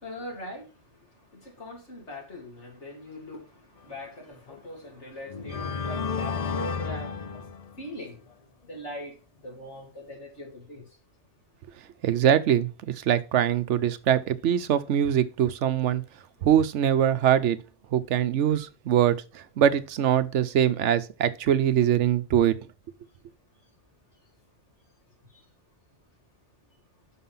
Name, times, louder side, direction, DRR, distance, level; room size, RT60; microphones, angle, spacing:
voice 1, 0.0-0.7 1.4-3.4 3.8-7.2 7.8-8.2 8.7-9.1 9.4-10.8, equal, 70° left, 3.1 m, -40 dB
sound 1, 4.4-4.5 5.2-8.0, left 6 dB, 40° left, 0.6 m, -32 dB
voice 2, 12.0-16.0 16.4-17.6 17.9-22.6, right 10 dB, 80° right, 1.0 m, -23 dB
6.1 x 5.6 x 5.6 m
omnidirectional pair, 1.2 m